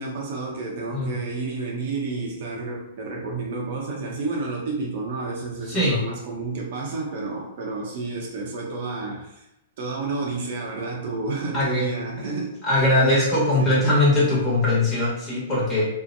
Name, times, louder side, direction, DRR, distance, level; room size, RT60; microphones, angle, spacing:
voice 1, 0.0-9.5 9.8-12.6 13.0-13.9, right 3 dB, 60° right, -1 dB, 0.7 m, -30 dB
voice 2, 5.7-6.0 11.5-11.9 12.6-15.9, left 1 dB, 20° left, -7 dB, 1.2 m, -21 dB
2.7 x 2.1 x 2.6 m, 0.84 s
hypercardioid pair, 130°, 0 cm